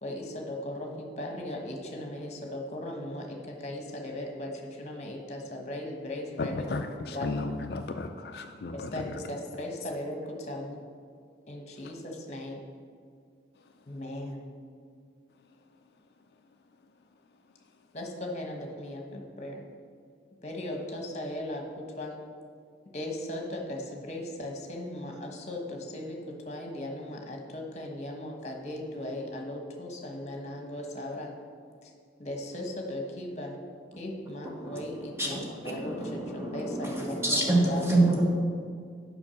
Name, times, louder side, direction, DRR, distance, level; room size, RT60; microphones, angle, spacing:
voice 1, 0.0-3.4 3.6-4.5 4.8-6.7 7.1-7.3 8.7-10.8 11.5-12.6 13.9-14.5 17.9-19.6 20.4-21.6 22.0-22.1 22.9-26.2 26.5-31.3 32.2-33.5 34.0-38.0, left 1 dB, 40° left, 1 dB, 1.2 m, -37 dB
voice 2, 6.4-9.2, left 3 dB, 60° left, 6 dB, 0.4 m, -34 dB
voice 3, 35.2-38.2, right 2 dB, 15° right, -2 dB, 1.3 m, -27 dB
7.1 x 5.3 x 6.4 m, 2.1 s
head